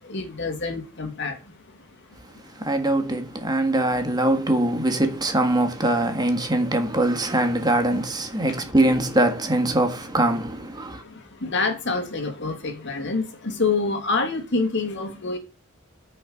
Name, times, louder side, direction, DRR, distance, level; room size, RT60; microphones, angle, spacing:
voice 1, 0.1-1.4 11.4-15.4, left 3 dB, 55° left, 2.4 m, -26 dB
voice 2, 2.6-11.0, right 1 dB, 20° right, 1.6 m, -22 dB
10.5 x 5.7 x 6.4 m
head